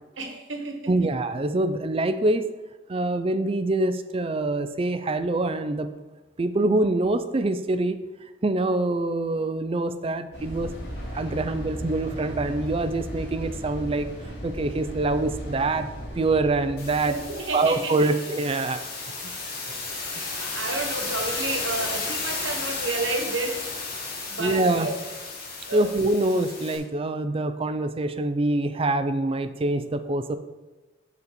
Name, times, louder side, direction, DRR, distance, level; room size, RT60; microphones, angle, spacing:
voice 1, 0.2-0.9 17.0-18.2 20.1-23.7 24.3-25.0 25.7-25.9, right 3 dB, 85° right, 4 dB, 1.3 m, -31 dB
voice 2, 0.9-2.5 2.9-5.9 6.4-8.0 8.4-10.7 11.1-15.9 16.1-17.2 17.5-18.8 24.4-24.9 25.7-30.4, right 2 dB, 30° right, 10 dB, 0.4 m, -25 dB
sound 1, 10.3-17.8, equal, 70° left, 2.4 m, -36 dB
sound 2, 16.8-26.8, left 3 dB, 55° left, 1.8 m, -33 dB
7.0 x 4.1 x 6.7 m, 1.2 s
head